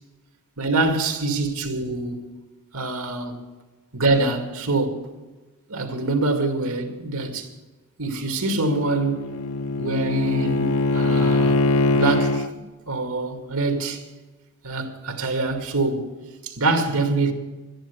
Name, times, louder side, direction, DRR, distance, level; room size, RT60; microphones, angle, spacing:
voice 1, 0.6-2.2 2.7-3.3 3.9-5.1 5.7-7.5 8.0-9.4 9.8-11.6 11.9-12.5 12.9-14.0 14.6-16.1 16.4-17.3, right 2 dB, 85° right, 2.2 m, -24 dB
Bowed string instrument, 8.4-12.5, left 3 dB, 70° left, 0.4 m, -22 dB
13.5 x 10.5 x 8.5 m
head